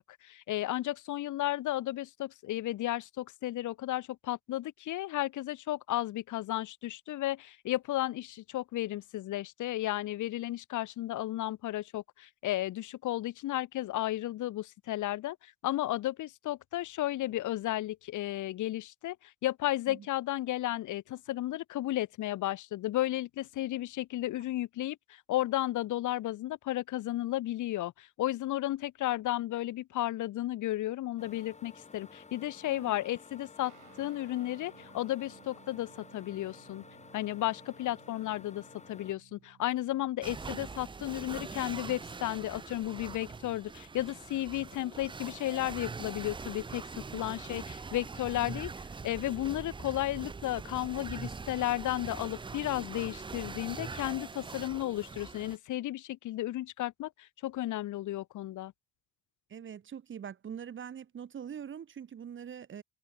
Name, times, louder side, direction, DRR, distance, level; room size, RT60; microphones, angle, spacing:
voice 1, 0.0-36.8 37.1-48.7 49.0-58.7, left 14 dB, 80° left, 1.3 m, -33 dB
sound 1, 31.2-39.1, left 4 dB, 25° left, 1.6 m, -53 dB
sound 2, 33.6-42.5, right 14 dB, 85° right, 5.2 m, -61 dB
sound 3, 40.2-55.6, right 4 dB, 15° right, 0.5 m, -43 dB
voice 2, 59.5-62.8, right 8 dB, 40° right, 0.9 m, -43 dB
cardioid pair, 90°, 30 cm